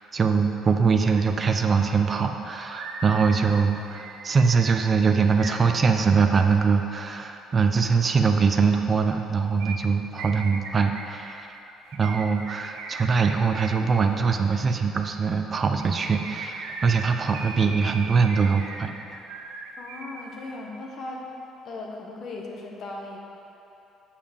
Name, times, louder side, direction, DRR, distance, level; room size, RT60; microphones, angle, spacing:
voice 1, 0.1-11.5 11.9-18.9, right 5 dB, 25° right, 5 dB, 0.5 m, -22 dB
sound 1, 1.1-1.2 1.5-6.3 9.6-13.8 15.6-20.3 20.5-20.6, right 4 dB, 85° right, 0.8 m, -39 dB
voice 2, 19.8-21.3 21.6-23.2, left 2 dB, 40° left, -1 dB, 1.1 m, -37 dB
7.0 x 5.6 x 6.6 m, 2.9 s
cardioid pair, 165°, 0 cm